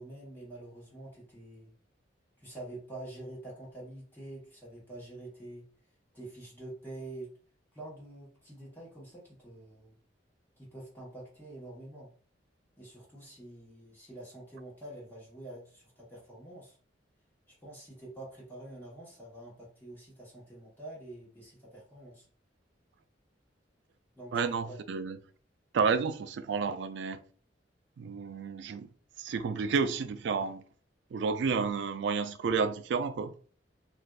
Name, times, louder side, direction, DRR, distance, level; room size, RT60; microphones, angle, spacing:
voice 1, 0.0-1.7 2.4-5.6 6.1-7.3 7.7-10.0 10.6-12.1 12.8-16.8 17.5-22.3 24.1-24.8, right 1 dB, 10° left, 1.0 m, -46 dB
voice 2, 24.3-25.2 25.7-27.2 28.0-28.9 29.2-30.6 31.1-33.3, right 5 dB, 70° right, 0.3 m, -31 dB
3.3 x 2.5 x 2.3 m
head